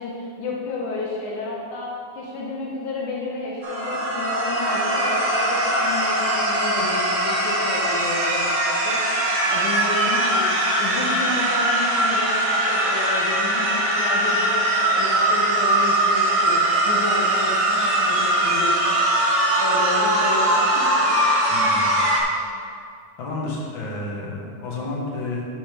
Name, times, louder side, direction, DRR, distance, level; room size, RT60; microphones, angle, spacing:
voice 1, 0.0-9.1 9.4-10.5 10.8-19.1 19.6-21.3, left 2 dB, 75° left, -4 dB, 1.2 m, -31 dB
sound 1, 3.6-22.2, right 1 dB, 70° right, 0.7 m, -21 dB
voice 2, 21.5-22.2 23.2-25.4, left 2 dB, 50° left, -3 dB, 1.6 m, -31 dB
9.8 x 7.1 x 3.5 m, 2.3 s
omnidirectional pair, 3.7 m